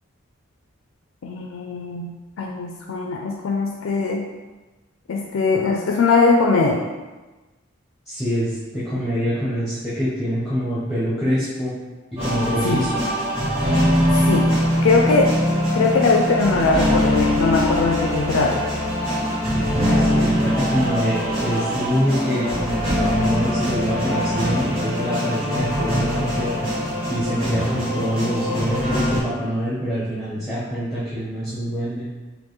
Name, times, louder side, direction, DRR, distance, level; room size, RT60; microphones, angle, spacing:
voice 1, 1.2-4.2 5.1-6.9 12.6-12.8 14.1-15.3 15.7-18.7, left 4 dB, 75° left, 0 dB, 0.4 m, -21 dB
voice 2, 8.1-11.7 12.2-13.0 20.0-26.6 27.1-32.1, equal, ahead, -11 dB, 0.7 m, -25 dB
sound 1, 12.2-29.2, equal, 30° right, 1.4 m, -22 dB
4.4 x 2.6 x 3.1 m, 1.2 s
head